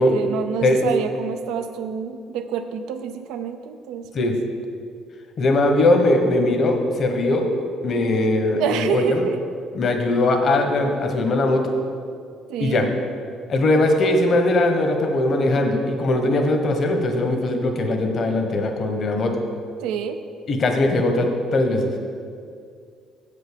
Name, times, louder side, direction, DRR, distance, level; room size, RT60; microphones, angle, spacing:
voice 1, 0.0-4.3 8.6-9.4 12.5-12.9 19.8-20.2, right 7 dB, 80° right, 8 dB, 0.6 m, -27 dB
voice 2, 5.4-7.5 7.8-9.3 9.7-11.7 12.6-12.9 13.5-19.3 20.5-22.2, left 2 dB, 50° left, 4 dB, 1.2 m, -20 dB
7.6 x 5.3 x 6.8 m, 2.2 s
supercardioid pair, 80°, 0 cm